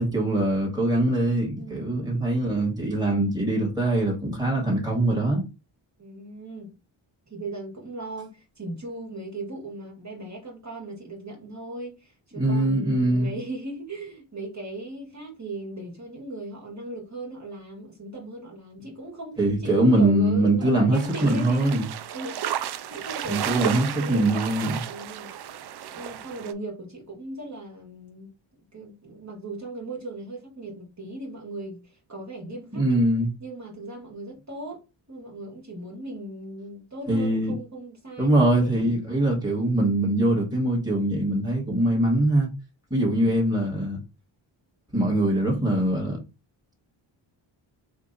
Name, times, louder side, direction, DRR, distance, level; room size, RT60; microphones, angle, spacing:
voice 1, 0.0-5.4 12.4-13.3 19.4-21.9 23.3-24.8 32.7-33.3 37.1-37.5 38.2-42.5 42.9-44.0 44.9-46.2, right 1 dB, 10° right, 1.9 m, -23 dB
voice 2, 1.6-2.0 6.0-6.7 7.3-8.3 8.6-21.8 22.1-25.3 25.9-28.3 28.7-31.8 32.1-33.0 33.4-34.8 35.1-38.7 43.1-43.4, right 2 dB, 35° right, 1.9 m, -38 dB
sound 1, 20.9-26.5, right 10 dB, 55° right, 0.5 m, -33 dB
3.5 x 2.6 x 4.0 m
cardioid pair, 70°, 49 cm